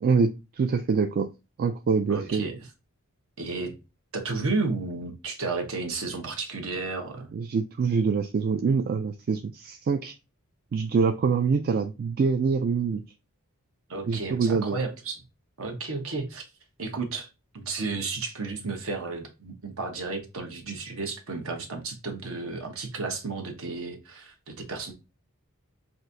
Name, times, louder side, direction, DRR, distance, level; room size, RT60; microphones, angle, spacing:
voice 1, 0.0-1.3 1.6-2.5 7.3-10.1 10.7-13.0 14.1-14.8, right 5 dB, 45° right, 7 dB, 0.3 m, -25 dB
voice 2, 2.1-2.7 3.4-3.7 4.1-7.3 13.9-15.2 15.6-16.5 16.8-17.3 17.5-24.9, right 3 dB, 65° right, 3 dB, 1.1 m, -32 dB
5.8 x 2.6 x 2.6 m, 0.28 s
head